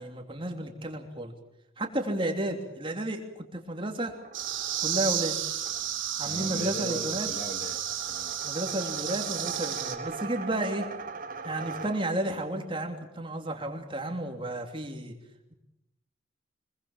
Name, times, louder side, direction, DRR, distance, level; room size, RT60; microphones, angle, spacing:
voice 1, 0.0-1.3 1.8-4.1 4.8-5.4 6.2-7.3 8.4-10.9 11.4-15.1, right 1 dB, 25° right, 3 dB, 3.0 m, -32 dB
sound 1, 4.1-12.4, right 4 dB, 45° right, 1.5 m, -41 dB
sound 2, 4.3-9.9, right 10 dB, 70° right, 3.8 m, -32 dB
voice 2, 6.2-8.4, equal, 40° left, 5 dB, 3.0 m, -39 dB
25.5 x 23.0 x 7.3 m, 0.86 s
head